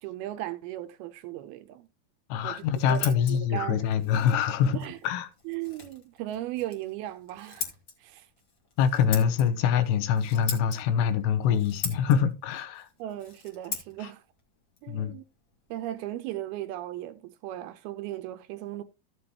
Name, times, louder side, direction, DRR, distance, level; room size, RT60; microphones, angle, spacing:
voice 1, 0.0-1.9 2.4-3.9 4.7-5.0 5.5-7.7 8.0-8.3 13.0-14.2 14.8-15.2 15.7-18.8, right 14 dB, 80° right, 2.4 m, -37 dB
voice 2, 2.3-5.3 8.8-12.9 14.0-14.1 14.9-15.1, left 8 dB, 85° left, 3.1 m, -25 dB
Scissors, 2.4-16.0, left 4 dB, 40° left, 2.0 m, -42 dB
14.5 x 7.8 x 2.9 m
omnidirectional pair, 4.8 m